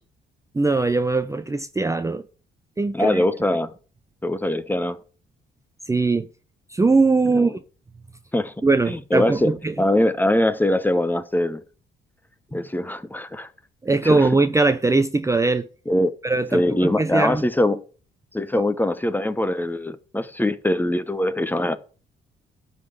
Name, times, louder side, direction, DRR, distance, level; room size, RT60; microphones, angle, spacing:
voice 1, 0.5-2.3 2.8-3.2 5.9-6.3 6.7-7.6 8.6-9.7 13.8-15.7 16.2-17.4, right 3 dB, 15° right, 0.6 m, -21 dB
voice 2, 2.9-3.7 4.2-5.0 7.3-7.5 8.3-8.5 8.9-9.5 9.8-11.6 12.5-13.5 14.0-14.2 15.9-16.1 16.5-17.8 18.3-21.8, left 1 dB, 10° left, 0.9 m, -22 dB
12.0 x 4.1 x 8.1 m
cardioid pair, 90°, 20 cm